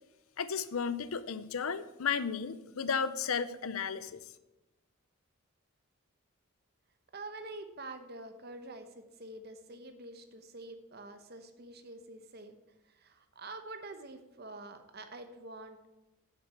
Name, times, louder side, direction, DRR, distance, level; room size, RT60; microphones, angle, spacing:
voice 1, 0.4-4.2, left 6 dB, 75° left, 14 dB, 0.6 m, -34 dB
voice 2, 7.1-12.6 12.9-15.9, right 2 dB, 45° right, 8 dB, 1.0 m, -47 dB
7.9 x 6.8 x 6.8 m, 0.98 s
head